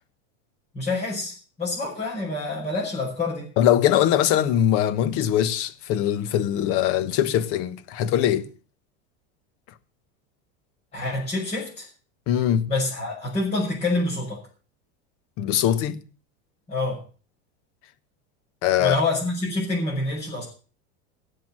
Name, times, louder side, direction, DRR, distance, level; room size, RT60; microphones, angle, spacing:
voice 1, 0.7-3.5 10.9-11.9 12.7-14.4 16.7-17.0 18.8-20.5, left 2 dB, 20° left, 6.4 m, -27 dB
voice 2, 3.6-8.5 12.3-12.7 15.4-16.0 18.6-19.0, left 11 dB, 45° left, 1.3 m, -22 dB
17.5 x 7.3 x 7.5 m
supercardioid pair, 155°, 32 cm